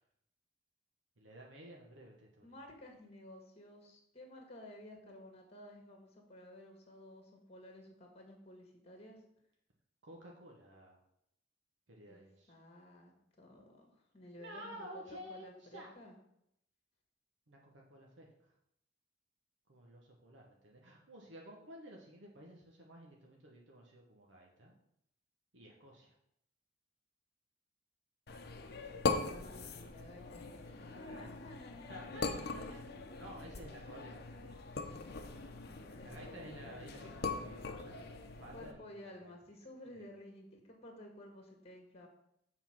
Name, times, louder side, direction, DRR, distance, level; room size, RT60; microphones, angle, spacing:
voice 1, 1.2-2.5 10.0-11.0 11.9-12.5 14.4-15.9 17.5-18.5 19.7-24.7 25.5-26.1 29.4-29.7 30.8-31.3 31.9-34.6 36.0-38.9 39.2-39.3 39.9-40.0, equal, 70° right, -1 dB, 1.1 m, -53 dB
voice 2, 2.4-9.2 12.1-12.2 12.5-16.1 29.2-33.4 35.6-36.1 38.5-42.1, left 1 dB, 35° left, 2 dB, 1.7 m, -54 dB
sound 1, 28.3-38.7, left 3 dB, 55° left, 0.8 m, -41 dB
7.2 x 4.0 x 5.9 m, 0.76 s
head